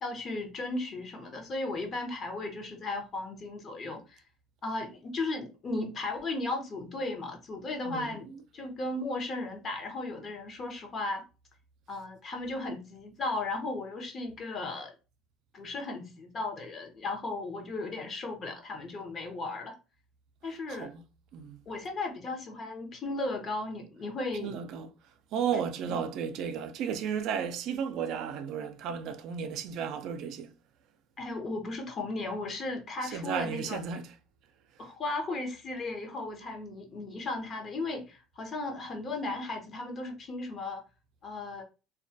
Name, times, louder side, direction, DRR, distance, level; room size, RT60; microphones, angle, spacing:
voice 1, 0.0-4.2 4.6-11.2 11.9-14.9 15.5-19.8 20.4-20.9 21.7-24.6 31.2-33.8 34.8-40.8 41.2-41.6, left 2 dB, 40° left, 0.7 m, -36 dB
voice 2, 7.8-8.2 20.7-21.0 21.3-21.6 24.4-24.9 25.3-30.5 33.0-34.1, right 7 dB, 65° right, 0.4 m, -34 dB
2.2 x 2.1 x 2.6 m
supercardioid pair, 100°, 0 cm